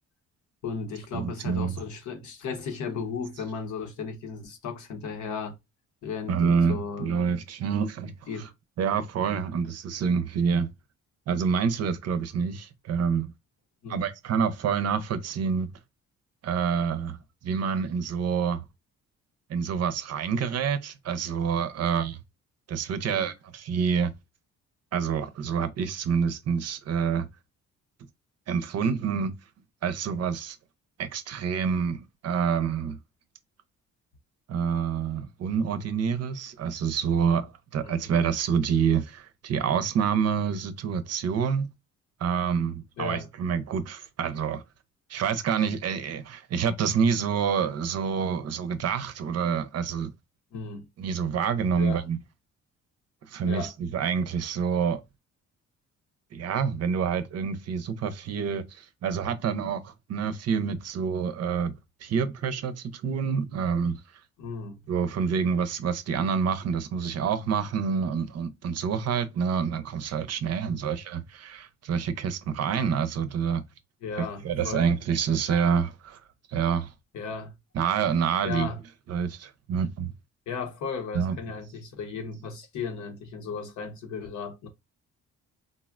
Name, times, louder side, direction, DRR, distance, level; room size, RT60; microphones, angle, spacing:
voice 1, 0.6-5.6 6.0-7.2 8.3-8.5 13.8-14.1 23.0-23.3 37.8-38.2 43.0-43.3 50.5-50.9 51.7-52.0 53.4-53.7 64.4-64.8 74.0-74.9 77.1-77.5 78.4-78.8 80.5-84.7, left 5 dB, 75° left, 0.9 m, -35 dB
voice 2, 1.1-1.8 6.3-8.1 8.8-10.7 11.3-13.3 13.9-15.7 16.4-17.2 17.4-18.6 19.5-22.2 22.7-24.1 24.9-27.3 28.5-29.3 29.8-30.6 31.0-33.0 34.5-41.7 42.2-44.6 45.1-50.1 51.0-52.2 53.3-55.0 56.3-61.7 62.0-64.0 64.9-73.6 74.2-76.2 76.5-76.9 77.7-78.7 79.1-80.1 81.1-81.4, right 6 dB, 55° right, 0.6 m, -27 dB
3.8 x 2.1 x 2.4 m
cardioid pair, 90°, 30 cm